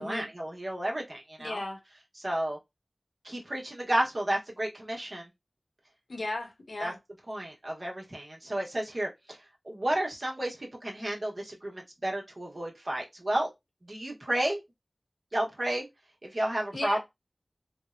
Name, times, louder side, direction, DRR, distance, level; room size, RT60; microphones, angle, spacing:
voice 1, 0.0-1.6 2.2-2.6 3.2-5.3 6.8-6.9 7.3-9.4 9.6-13.5 13.8-14.6 15.3-15.9 16.2-17.0, right 1 dB, 50° right, 1.0 m, -32 dB
voice 2, 1.4-1.8 6.1-7.0 16.7-17.0, left 2 dB, 80° left, 0.9 m, -35 dB
3.4 x 2.1 x 2.5 m
wide cardioid pair, 60°, 0 cm